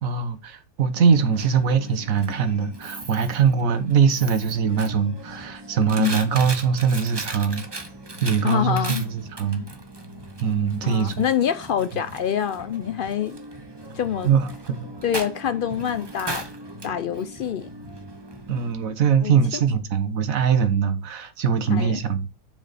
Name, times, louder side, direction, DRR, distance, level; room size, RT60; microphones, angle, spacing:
voice 1, 0.0-7.7 8.2-9.7 10.4-11.3 14.2-14.9 18.5-22.3, right 6 dB, 65° right, 1.4 m, -22 dB
Coin (dropping), 0.9-18.7, right 2 dB, 20° right, 0.9 m, -38 dB
voice 2, 8.4-9.0 10.8-13.4 13.9-14.3 15.0-16.5 16.8-17.7 19.2-19.3 21.7-22.0, left 9 dB, 85° left, 0.4 m, -25 dB
7.3 x 5.8 x 4.1 m
omnidirectional pair, 1.6 m